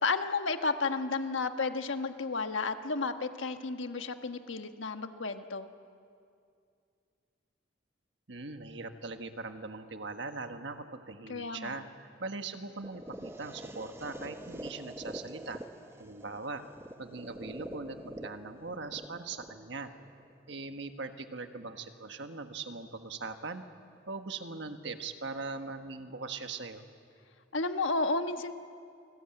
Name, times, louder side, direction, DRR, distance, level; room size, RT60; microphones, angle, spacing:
voice 1, 0.0-5.7 11.3-11.8 27.5-28.5, left 3 dB, 85° left, 7 dB, 1.4 m, -32 dB
voice 2, 8.3-15.6 16.0-16.6 17.0-19.9 20.5-23.6 24.1-26.8, right 3 dB, 65° right, 7 dB, 1.5 m, -40 dB
sound 1, 12.8-20.8, right 1 dB, 15° right, 1.1 m, -46 dB
28.0 x 20.0 x 9.0 m, 2.4 s
head